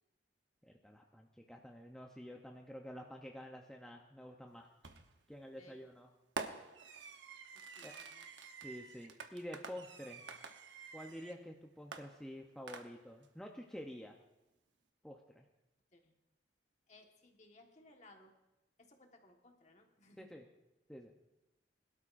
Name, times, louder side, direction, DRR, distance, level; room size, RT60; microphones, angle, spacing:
voice 1, 0.6-4.7 5.3-6.1 7.8-7.9 8.6-10.2 10.9-14.2 15.0-15.5 20.2-20.5 20.9-21.1, equal, 5° left, 1 dB, 0.7 m, -49 dB
Fireworks, 4.8-5.2 6.4-11.4 11.9-13.3, right 4 dB, 80° right, 0.9 m, -48 dB
voice 2, 7.5-8.2 15.9-16.1 16.9-18.3 18.8-20.3, left 1 dB, 40° left, 2 dB, 1.4 m, -62 dB
21.5 x 12.5 x 2.6 m, 0.96 s
head